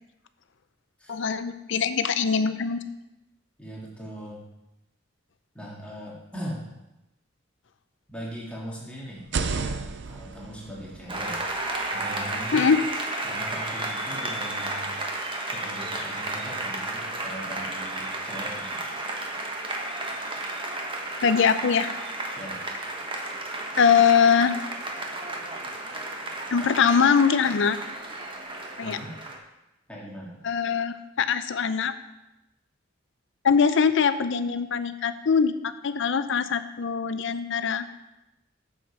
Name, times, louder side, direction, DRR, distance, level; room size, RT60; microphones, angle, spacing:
voice 1, 1.1-2.8 12.5-12.8 21.2-21.9 23.8-24.6 26.5-27.8 28.8-29.0 30.4-31.9 33.4-37.9, left 6 dB, 65° left, 12 dB, 0.5 m, -22 dB
voice 2, 3.6-4.4 5.5-6.7 8.1-9.2 9.5-11.5 11.9-12.7 13.2-15.0 15.5-18.9 22.4-22.6 28.8-29.1 29.9-30.4, equal, 5° left, -5 dB, 1.9 m, -40 dB
sound 1, 9.2-13.0, right 4 dB, 60° right, 0.6 m, -34 dB
Applause, 11.1-29.4, right 2 dB, 25° right, 1.2 m, -33 dB
9.3 x 7.1 x 4.4 m, 0.96 s
head